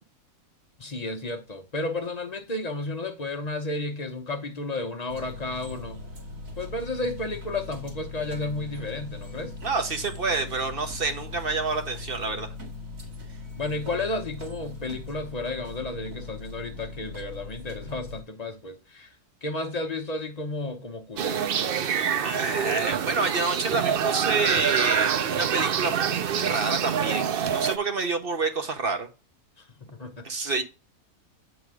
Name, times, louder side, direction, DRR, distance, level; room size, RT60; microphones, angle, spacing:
voice 1, 0.8-6.0 6.6-9.5 13.6-19.1 19.4-21.5 29.6-30.6, left 2 dB, 30° left, 0.8 m, -32 dB
sound 1, 5.1-18.2, left 2 dB, 55° right, 2.3 m, -40 dB
voice 2, 9.6-12.5 22.2-29.1 30.2-30.6, right 4 dB, 40° right, 1.1 m, -28 dB
sound 2, 21.2-27.8, right 8 dB, 75° right, 0.5 m, -26 dB
8.2 x 3.9 x 4.9 m
omnidirectional pair, 1.7 m